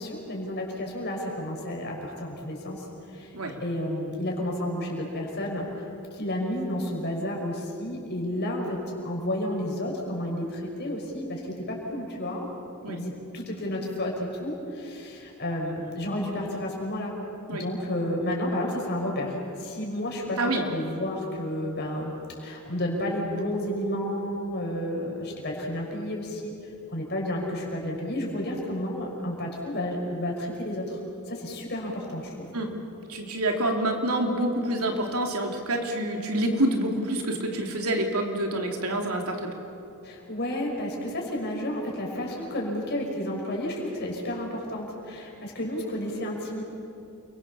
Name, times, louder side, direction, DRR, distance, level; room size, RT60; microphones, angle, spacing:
voice 1, 0.0-2.8 3.1-3.3 3.6-5.7 6.1-12.5 12.8-17.1 17.5-26.5 26.9-31.0 31.3-32.5 40.0-46.6, left 1 dB, 50° left, -1 dB, 5.8 m, -31 dB
voice 2, 33.1-39.5, right 1 dB, 80° right, 2 dB, 3.3 m, -27 dB
29.0 x 23.5 x 7.1 m, 2.8 s
head